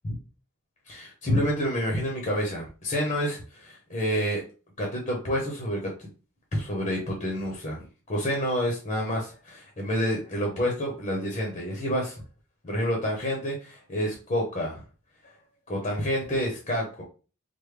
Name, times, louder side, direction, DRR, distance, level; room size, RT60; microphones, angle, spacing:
voice 1, 0.9-4.4 4.8-6.1 6.5-12.2 12.6-14.8 15.7-17.0, equal, 30° left, -1 dB, 0.7 m, -28 dB
3.3 x 2.1 x 3.2 m, 0.36 s
head